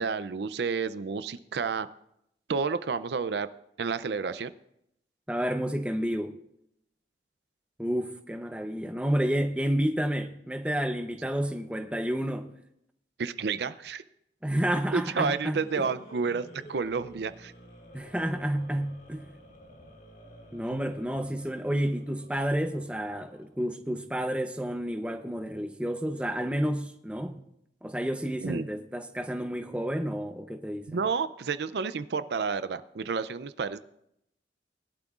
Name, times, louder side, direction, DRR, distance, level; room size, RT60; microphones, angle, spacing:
voice 1, 0.0-1.9 2.5-3.5 3.8-4.5 13.2-14.0 14.9-17.5 20.7-20.9 28.4-28.7 30.9-33.8, right 5 dB, 70° right, 0.5 m, -30 dB
voice 2, 5.3-6.3 7.8-12.5 14.4-15.9 17.9-19.3 20.5-27.5 27.8-31.0, equal, 5° right, 0.7 m, -30 dB
sound 1, 14.8-23.6, equal, 55° left, 3.9 m, -51 dB
20.5 x 11.5 x 2.4 m
head